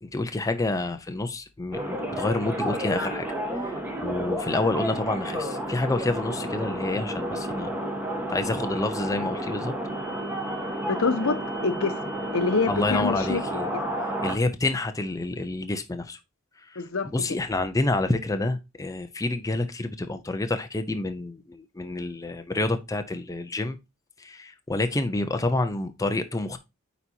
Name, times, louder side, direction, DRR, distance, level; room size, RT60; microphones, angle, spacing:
voice 1, 0.0-3.3 3.5-7.7 8.3-9.7 12.7-13.7 14.2-16.2 16.6-23.8 24.2-26.6, left 2 dB, 15° left, 0.5 m, -28 dB
sound 1, 1.7-14.3, right 1 dB, 10° right, 1.4 m, -31 dB
voice 2, 10.9-12.0 12.3-13.8 16.8-17.1, left 4 dB, 75° left, 0.8 m, -26 dB
9.0 x 4.1 x 2.7 m
head